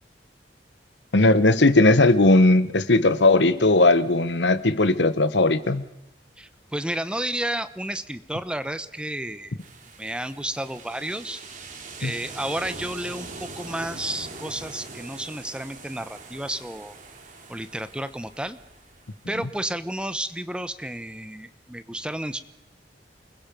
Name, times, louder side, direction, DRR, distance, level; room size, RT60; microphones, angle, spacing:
voice 1, 1.1-5.8 12.0-12.1, left 2 dB, 75° left, 13 dB, 1.3 m, -18 dB
voice 2, 6.4-9.6 10.0-11.4 12.0-16.9 17.5-18.6 19.3-22.4, right 1 dB, 5° right, 12 dB, 0.9 m, -31 dB
sound 1, 9.6-19.3, right 3 dB, 45° right, 3.4 m, -42 dB
28.5 x 21.0 x 5.3 m, 0.89 s
head